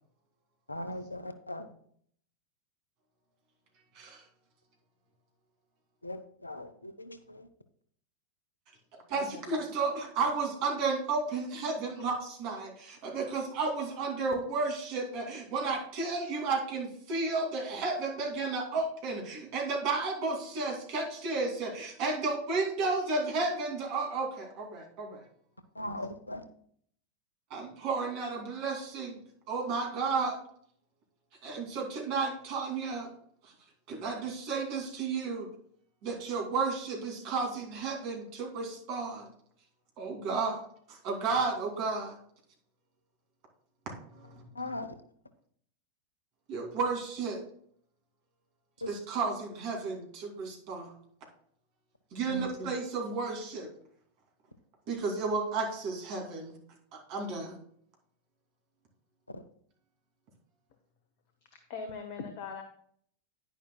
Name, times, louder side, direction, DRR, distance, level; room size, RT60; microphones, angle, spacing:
voice 1, 0.7-1.7 6.0-7.5 25.7-26.4 44.5-45.0 48.8-48.9 52.3-52.5 59.3-59.4, left 1 dB, 80° left, 11 dB, 0.8 m, -39 dB
voice 2, 9.1-25.2 27.5-29.2 29.5-30.4 31.4-33.1 33.4-33.5 33.9-35.5 36.0-39.3 40.0-40.6 40.9-42.1 44.1-44.4 46.5-47.4 48.9-50.9 52.1-53.7 54.9-56.5 56.9-57.6, right 4 dB, 45° right, 1 dB, 2.7 m, -32 dB
voice 3, 61.7-62.6, left 5 dB, 50° left, 6 dB, 1.1 m, -41 dB
10.0 x 10.0 x 2.3 m, 0.62 s
figure-of-eight pair, 90°, 0 cm